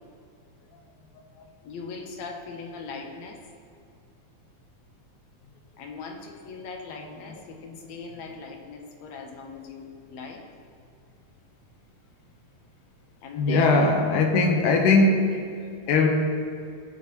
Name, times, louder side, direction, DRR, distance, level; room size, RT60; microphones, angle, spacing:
voice 1, 1.6-3.4 5.8-10.4 13.2-13.8, left 4 dB, 70° left, 2 dB, 2.2 m, -40 dB
voice 2, 13.4-16.1, left 3 dB, 85° left, 3 dB, 2.6 m, -21 dB
20.0 x 7.4 x 3.1 m, 2.3 s
omnidirectional pair, 3.4 m